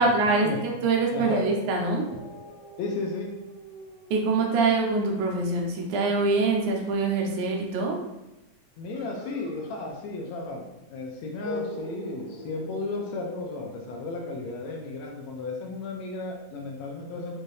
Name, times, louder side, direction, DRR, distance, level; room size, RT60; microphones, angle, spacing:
voice 1, 0.0-2.1 4.1-8.0, right 3 dB, 90° right, 1 dB, 2.2 m, -24 dB
voice 2, 1.1-1.4 2.8-3.3 8.8-17.4, left 3 dB, 75° left, 0 dB, 1.7 m, -34 dB
sound 1, 1.3-6.7 8.9-10.4 10.7-10.8 11.4-13.6, equal, 45° left, 1.1 m, -40 dB
5.5 x 2.5 x 3.2 m, 0.96 s
omnidirectional pair, 3.4 m